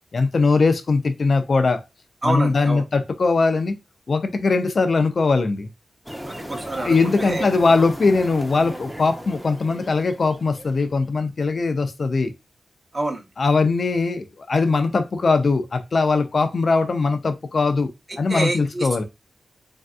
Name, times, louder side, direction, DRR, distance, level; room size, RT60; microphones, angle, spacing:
voice 1, 0.1-1.8 2.2-3.7 4.1-5.7 6.8-12.3 13.4-17.9 18.2-19.0, left 4 dB, 55° left, 0.5 m, -20 dB
voice 2, 2.2-2.8 6.3-7.5 7.8-7.9 12.9-13.3 18.1-19.0, right 2 dB, 30° right, 0.8 m, -28 dB
sound 1, 6.1-11.0, equal, 5° right, 0.6 m, -36 dB
3.3 x 2.6 x 2.3 m
cardioid pair, 70°, 0 cm